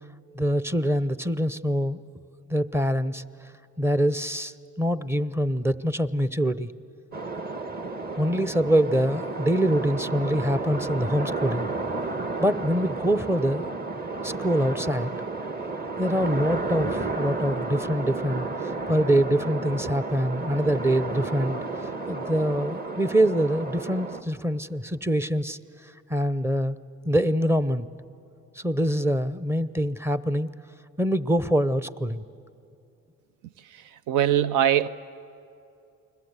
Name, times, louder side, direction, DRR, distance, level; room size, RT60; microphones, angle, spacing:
voice 1, 0.3-2.0 2.5-3.5 3.8-6.7 8.2-11.7 12.4-13.7 14.2-15.1 16.0-25.6 26.1-26.8 27.0-27.9 28.6-30.5 31.0-32.2, equal, 10° right, 0.7 m, -25 dB
sound 1, 7.1-24.2, right 3 dB, 30° right, 1.6 m, -32 dB
voice 2, 34.1-34.9, right 11 dB, 85° right, 0.6 m, -21 dB
29.0 x 21.0 x 8.1 m
cardioid pair, 90°, 30 cm